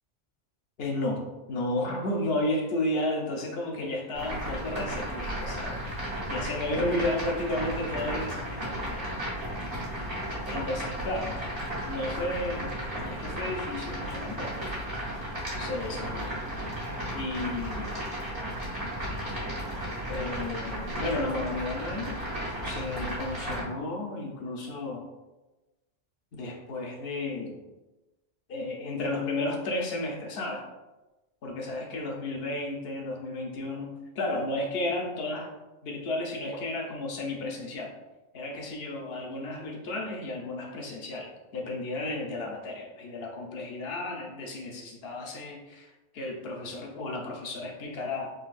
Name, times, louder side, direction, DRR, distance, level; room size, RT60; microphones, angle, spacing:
voice 1, 0.8-9.4 10.5-11.4 11.8-14.6 15.6-16.3 17.1-18.0 20.1-22.2 22.6-25.0 26.3-27.6 28.5-30.7 31.4-35.5 35.8-37.9 38.3-48.3, left 2 dB, 65° left, 1 dB, 0.8 m, -33 dB
sound 1, 4.1-23.6, equal, 65° right, 1.4 m, -34 dB
3.9 x 2.2 x 2.4 m, 1.1 s
omnidirectional pair, 1.2 m